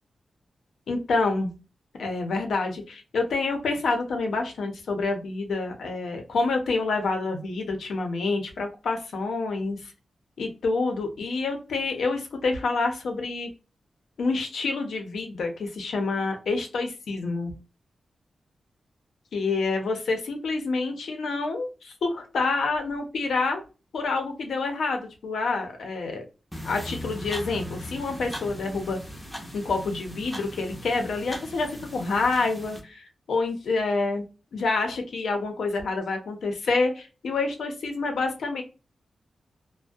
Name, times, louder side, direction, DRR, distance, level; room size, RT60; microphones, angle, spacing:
voice 1, 0.9-1.5 2.0-9.8 10.4-13.5 14.2-17.5 19.3-23.6 23.9-26.2 26.6-29.0 29.5-34.3 34.5-38.6, left 3 dB, 85° left, 4 dB, 0.6 m, -27 dB
sound 1, 26.5-32.8, left 1 dB, 5° left, 0.5 m, -39 dB
2.3 x 2.1 x 2.5 m, 0.32 s
wide cardioid pair, 170°, 0 cm